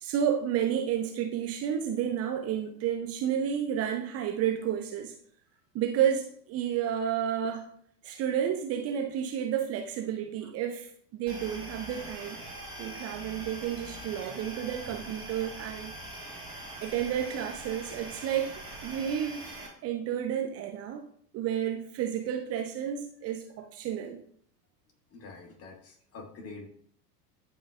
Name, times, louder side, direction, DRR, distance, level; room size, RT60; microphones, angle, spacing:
voice 1, 0.0-5.2 5.7-7.7 8.0-12.4 12.8-15.9 16.8-19.6 19.8-21.0 21.3-24.2, right 9 dB, 30° right, 4 dB, 0.7 m, -31 dB
sound 1, 11.3-19.7, right 1 dB, 10° right, 3.3 m, -43 dB
voice 2, 25.1-26.7, left 3 dB, 30° left, 3 dB, 1.6 m, -46 dB
12.5 x 5.4 x 2.4 m, 0.62 s
figure-of-eight pair, 85°, 48 cm